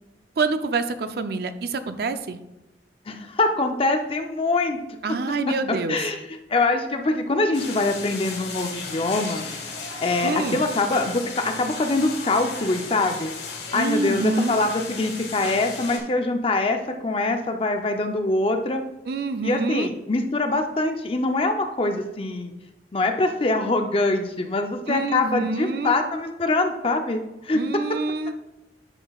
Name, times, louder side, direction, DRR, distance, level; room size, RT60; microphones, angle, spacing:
voice 1, 0.4-2.4 5.0-6.0 10.2-10.6 13.7-14.6 19.1-19.9 24.9-26.0 27.5-28.3, right 3 dB, 60° right, 9 dB, 0.5 m, -26 dB
voice 2, 3.1-4.8 5.1-5.2 5.5-5.6 5.9-9.4 10.0-13.3 13.7-18.8 19.4-22.5 22.9-27.6, left 2 dB, 30° left, 5 dB, 0.5 m, -24 dB
sound 1, 7.5-16.0, left 4 dB, 70° left, 1.6 m, -35 dB
9.8 x 6.0 x 2.4 m, 1.0 s
head